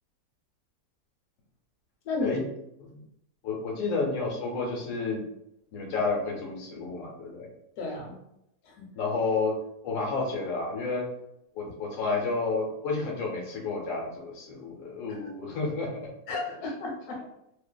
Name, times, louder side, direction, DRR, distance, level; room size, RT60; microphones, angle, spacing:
voice 1, 2.0-2.4 7.8-8.2 8.6-8.9 15.1-15.3 16.3-17.3, left 3 dB, 85° left, 1 dB, 1.1 m, -33 dB
voice 2, 3.4-5.2 5.7-7.5 8.9-9.5 9.8-11.0 11.5-16.0, left 3 dB, 60° left, -2 dB, 1.1 m, -30 dB
2.6 x 2.4 x 2.2 m, 0.80 s
omnidirectional pair, 1.6 m